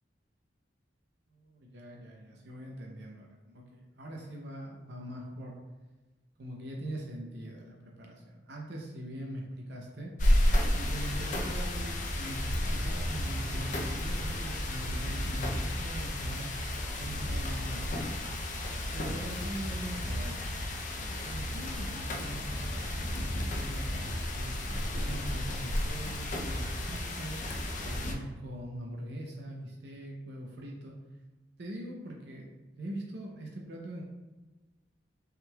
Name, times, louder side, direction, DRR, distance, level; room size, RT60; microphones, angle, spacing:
voice 1, 1.3-5.6 6.4-10.1 10.7-16.5 17.0-18.2 18.9-20.6 21.2-27.4 27.8-31.0 31.6-32.5 32.7-34.0, right 1 dB, 65° right, -1 dB, 0.6 m, -42 dB
sound 1, 10.2-28.1, left 1 dB, 45° left, 0.5 m, -32 dB
5.6 x 3.6 x 2.3 m, 1.2 s
head